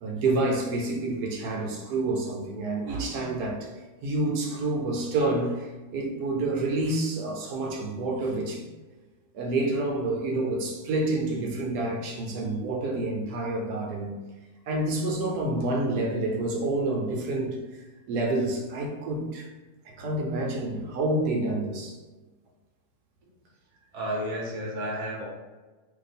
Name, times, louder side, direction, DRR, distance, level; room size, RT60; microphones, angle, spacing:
voice 1, 0.0-3.7 4.0-8.7 9.3-14.1 14.7-17.6 18.1-19.5 19.8-22.0, right 2 dB, 75° right, 0 dB, 1.1 m, -28 dB
voice 2, 23.9-25.3, equal, 35° right, -3 dB, 0.6 m, -31 dB
2.7 x 2.3 x 4.1 m, 1.2 s
omnidirectional pair, 1.7 m